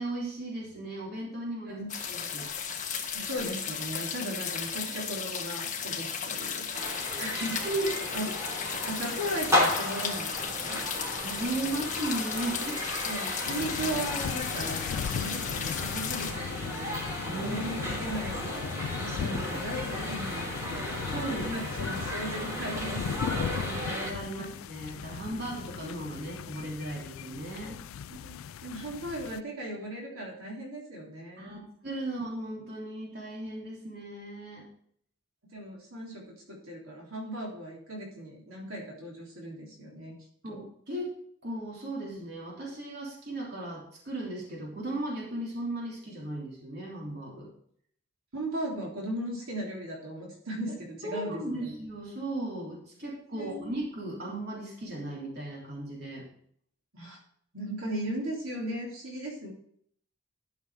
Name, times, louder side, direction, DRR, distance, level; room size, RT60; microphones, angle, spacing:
voice 1, 0.0-2.5 7.3-7.4 7.6-7.9 11.2-12.8 17.3-17.8 19.0-19.6 21.1-21.5 23.4-27.8 31.4-34.6 40.4-41.1 41.4-47.5 51.0-56.3, right 1 dB, 50° right, -3 dB, 3.2 m, -36 dB
sound 1, 1.9-16.3, left 7 dB, 35° left, 1.5 m, -35 dB
voice 2, 3.1-7.6 8.1-8.3 8.8-10.8 13.1-14.8 15.1-17.0 17.4-18.7 19.2-24.0 24.4-24.5 28.1-31.6 35.5-40.1 40.5-40.6 48.3-51.7 53.3-53.6 56.9-57.2 57.5-59.5, right 1 dB, 85° right, -3 dB, 3.5 m, -37 dB
sound 2, 6.7-24.1, left 1 dB, 15° right, 3.3 m, -34 dB
sound 3, 13.4-29.4, left 7 dB, 80° left, 0.3 m, -38 dB
12.0 x 6.5 x 4.8 m, 0.63 s
head